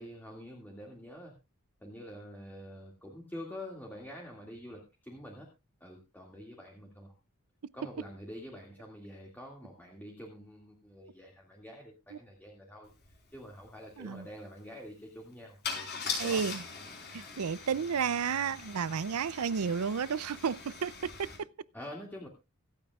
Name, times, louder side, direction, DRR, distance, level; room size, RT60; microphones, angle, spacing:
voice 1, 0.0-1.4 1.8-5.5 5.8-7.1 7.7-16.4 21.7-22.3, equal, 10° left, 2.2 m, -47 dB
Car / Engine starting / Idling, 13.0-13.1 13.4-13.6 15.6-21.4, left 5 dB, 50° left, 4.4 m, -41 dB
voice 2, 16.2-16.6 17.1-21.3, right 6 dB, 80° right, 0.5 m, -32 dB
24.5 x 8.7 x 2.4 m
head